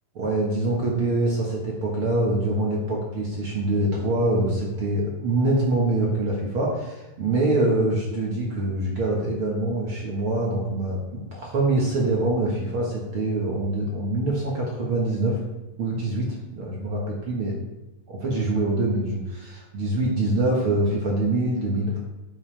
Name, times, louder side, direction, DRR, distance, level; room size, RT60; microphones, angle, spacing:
voice 1, 0.1-15.4 15.8-17.6 18.1-22.0, right 2 dB, 50° right, -3 dB, 1.8 m, -24 dB
10.0 x 8.3 x 3.4 m, 1.0 s
omnidirectional pair, 4.1 m